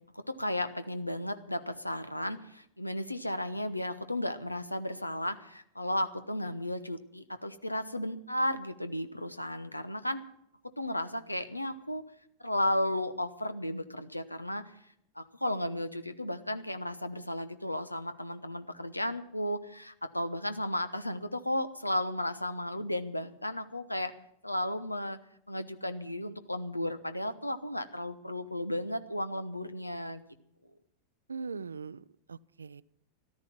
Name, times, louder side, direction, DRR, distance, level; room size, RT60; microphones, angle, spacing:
voice 1, 0.1-10.2 10.8-12.0 12.4-14.7 15.2-24.1 24.4-25.2 25.5-30.2, left 1 dB, 85° left, 12 dB, 0.9 m, -34 dB
voice 2, 31.3-32.8, right 5 dB, 75° right, 19 dB, 0.5 m, -41 dB
14.0 x 13.0 x 6.0 m, 0.73 s
figure-of-eight pair, 90°, 0 cm